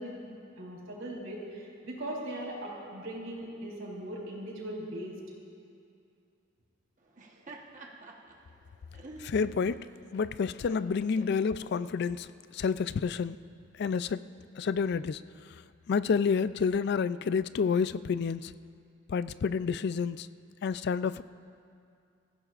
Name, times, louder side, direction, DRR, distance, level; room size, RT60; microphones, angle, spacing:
voice 1, 0.0-5.2, right 1 dB, 80° right, 4.1 m, -39 dB
Laughter, 7.0-12.2, right 2 dB, 40° right, 1.2 m, -51 dB
voice 2, 9.2-9.9 10.1-12.3 12.5-13.4 13.8-14.2 14.6-15.2 15.9-18.5 19.1-20.3 20.6-21.2, left 5 dB, 55° left, 0.3 m, -29 dB
26.0 x 15.5 x 2.5 m
head